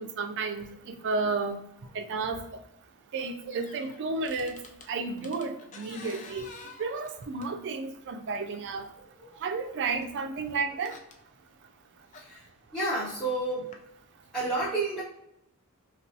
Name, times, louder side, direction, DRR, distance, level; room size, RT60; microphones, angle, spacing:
voice 1, 0.0-1.6 1.9-2.4 3.1-4.6 4.9-6.5 6.8-8.9 9.4-11.0, right 4 dB, 55° right, 6 dB, 0.4 m, -32 dB
sound 1, 3.1-4.9 5.2-7.7 8.6-8.7 10.0-10.1 10.4-11.2 12.1-12.3 13.7-13.8, left 3 dB, 35° left, 0.3 m, -49 dB
voice 2, 9.2-9.6 9.9-10.0 12.1-13.7 14.3-15.0, right 2 dB, ahead, -12 dB, 0.8 m, -31 dB
4.2 x 2.2 x 2.7 m, 0.80 s
head